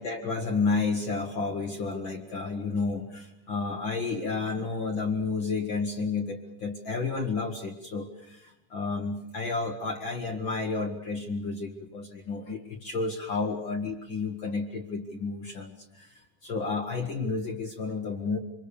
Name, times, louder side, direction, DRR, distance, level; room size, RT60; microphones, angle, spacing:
voice 1, 0.0-18.4, left 4 dB, 55° left, 5 dB, 1.3 m, -31 dB
26.0 x 22.5 x 6.9 m, 0.87 s
omnidirectional pair, 4.3 m